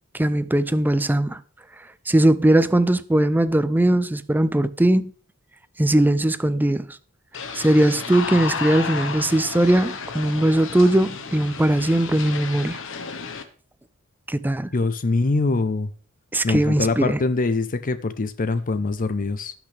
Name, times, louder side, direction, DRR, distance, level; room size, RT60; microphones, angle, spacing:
voice 1, 0.1-1.4 2.1-5.1 5.8-6.9 7.5-12.8 14.3-14.7 16.3-17.2, right 1 dB, 10° right, 0.4 m, -19 dB
sound 1, 7.3-13.4, left 5 dB, 65° left, 1.2 m, -32 dB
voice 2, 14.7-15.9 16.4-19.5, left 3 dB, 40° left, 0.6 m, -23 dB
17.5 x 6.0 x 3.3 m
head